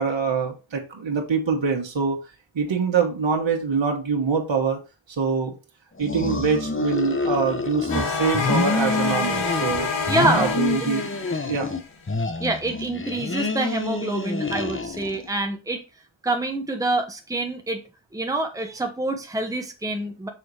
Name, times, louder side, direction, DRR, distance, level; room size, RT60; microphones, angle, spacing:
voice 1, 0.0-2.2 2.5-4.8 5.1-5.5 6.0-9.9 10.3-11.2 11.4-11.7, right 5 dB, 65° right, 1 dB, 1.6 m, -24 dB
sound 1, 6.0-8.1 8.3-9.8 10.1-11.8 12.1-15.3, left 3 dB, 25° left, 1.0 m, -27 dB
sound 2, 7.9-11.8, left 4 dB, 70° left, 1.6 m, -27 dB
voice 2, 10.1-10.5 12.4-15.8 16.2-17.8 18.1-20.3, right 2 dB, 5° right, 3 dB, 1.2 m, -26 dB
6.8 x 4.0 x 4.9 m, 0.29 s
wide cardioid pair, 60°, 48 cm